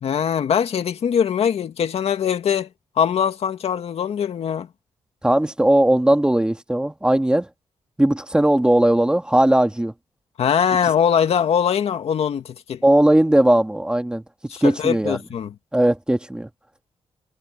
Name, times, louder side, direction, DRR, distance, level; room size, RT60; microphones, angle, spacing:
voice 1, 0.0-2.7 3.0-4.7 10.4-12.8 14.5-15.5, left 8 dB, 70° left, 2.1 m, -22 dB
voice 2, 5.2-7.5 8.0-9.9 12.8-14.2 14.6-15.2 15.7-16.5, right 1 dB, 10° right, 1.8 m, -18 dB
wide cardioid pair, 135°, 11 cm